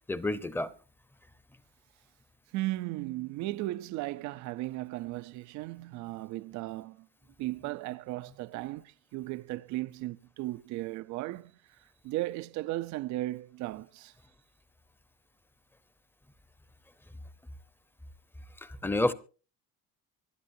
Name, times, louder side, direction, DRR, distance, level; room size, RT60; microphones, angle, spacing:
voice 1, 0.1-0.7 18.6-19.1, left 2 dB, 5° left, 0.8 m, -29 dB
voice 2, 2.5-7.1 7.4-11.8 12.0-14.1, right 17 dB, 75° right, 0.6 m, -36 dB
25.0 x 12.0 x 2.7 m
cardioid pair, 135°, 29 cm